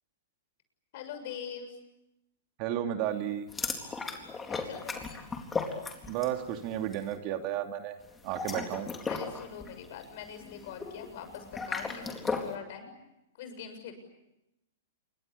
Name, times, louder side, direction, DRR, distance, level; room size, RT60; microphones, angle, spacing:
voice 1, 0.9-1.8 4.5-5.1 9.1-12.9 13.4-13.9, left 8 dB, 55° left, 8 dB, 6.9 m, -43 dB
voice 2, 2.6-3.4 6.1-8.0 8.2-8.9, right 11 dB, 45° right, 6 dB, 2.8 m, -32 dB
sound 1, 3.5-6.4 6.7-7.0 8.2-12.6, left 4 dB, 15° left, 4.0 m, -36 dB
28.5 x 24.0 x 8.6 m, 0.90 s
hypercardioid pair, 110°, 0 cm